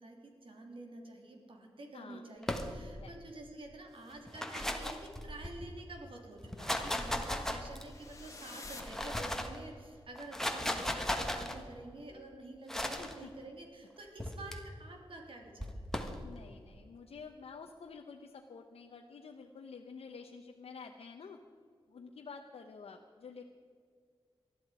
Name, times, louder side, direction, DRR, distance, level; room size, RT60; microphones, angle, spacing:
voice 1, 0.0-15.9, right 2 dB, 65° right, 2 dB, 3.1 m, -49 dB
voice 2, 1.9-2.2 3.0-3.2 10.5-11.0 12.1-12.3 13.0-13.3 16.2-21.4 21.9-23.4, left 5 dB, 85° left, 3 dB, 0.9 m, -50 dB
sound 1, 2.4-3.1 4.1-5.7 6.4-8.0 8.6-9.6 10.2-11.6 12.7-13.1 14.2-14.6 15.6-16.2, left 1 dB, 5° left, 1.4 m, -36 dB
sound 2, 7.7-9.9, left 3 dB, 30° left, 1.8 m, -51 dB
20.0 x 13.0 x 5.0 m, 2.1 s
wide cardioid pair, 115°, 10 cm